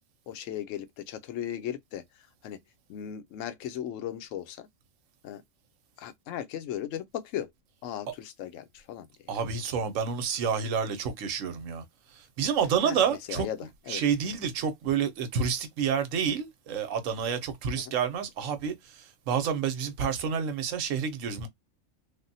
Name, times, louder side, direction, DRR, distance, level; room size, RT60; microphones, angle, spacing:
voice 1, 0.3-2.6 2.9-4.7 5.2-5.4 6.0-7.5 7.8-9.1 12.8-14.0 17.8-17.9, left 10 dB, 80° left, 0.9 m, -37 dB
voice 2, 9.3-11.8 12.4-13.5 13.9-18.8 19.3-21.5, right 7 dB, 85° right, 1.0 m, -29 dB
3.4 x 2.1 x 2.6 m
omnidirectional pair, 1.3 m